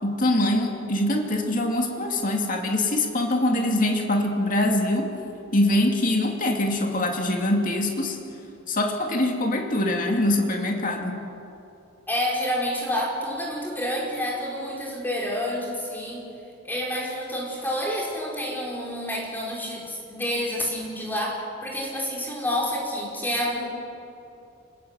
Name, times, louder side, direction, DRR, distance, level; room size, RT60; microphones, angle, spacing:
voice 1, 0.0-5.1 5.5-8.2 8.7-11.2, left 1 dB, 40° left, 2 dB, 2.6 m, -23 dB
voice 2, 12.1-16.3 16.6-23.7, left 1 dB, 10° left, -3 dB, 4.9 m, -29 dB
27.0 x 20.0 x 8.2 m, 2.8 s
head